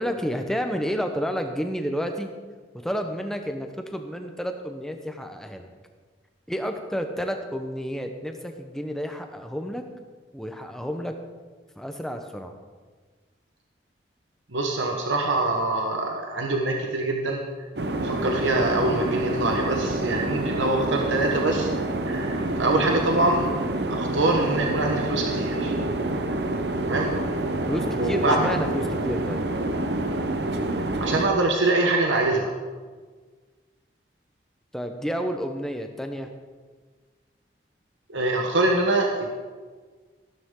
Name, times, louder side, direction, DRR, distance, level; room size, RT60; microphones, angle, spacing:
voice 1, 0.0-2.3 2.7-5.7 6.5-9.8 10.3-11.1 11.8-12.5 27.7-29.4 34.7-36.3, equal, ahead, 5 dB, 0.9 m, -30 dB
voice 2, 14.5-17.4 18.0-21.7 22.1-23.5 23.9-25.7 26.9-27.1 28.0-28.4 31.0-32.5 38.1-39.3, right 2 dB, 90° right, 1 dB, 1.3 m, -24 dB
sound 1, 17.8-31.3, right 1 dB, 65° right, 0.9 m, -27 dB
14.5 x 12.0 x 3.8 m, 1.5 s
head